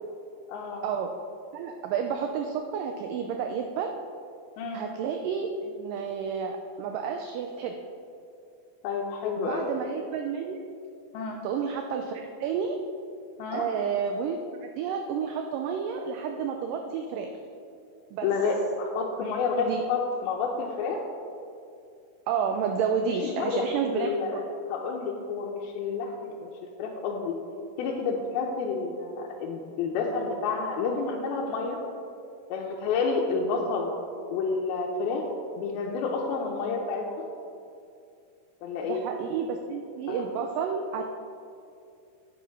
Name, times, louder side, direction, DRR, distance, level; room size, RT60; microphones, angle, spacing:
voice 1, 0.5-0.8 4.6-4.8 8.8-9.7 11.1-11.4 13.4-13.7 18.2-21.0 23.1-24.4 24.7-26.5 26.8-27.3 27.8-31.8 32.5-33.9 34.3-35.3 35.6-37.3 38.6-39.0 40.1-40.2, left 4 dB, 85° left, -2 dB, 2.7 m, -29 dB
voice 2, 1.5-3.9 4.7-7.8 9.4-10.6 11.4-12.8 13.5-14.4 14.8-17.3 18.1-18.3 19.6-19.8 22.3-24.4 38.8-41.0, right 6 dB, 80° right, 4 dB, 2.0 m, -30 dB
8.8 x 8.6 x 5.2 m, 2.5 s
omnidirectional pair, 4.2 m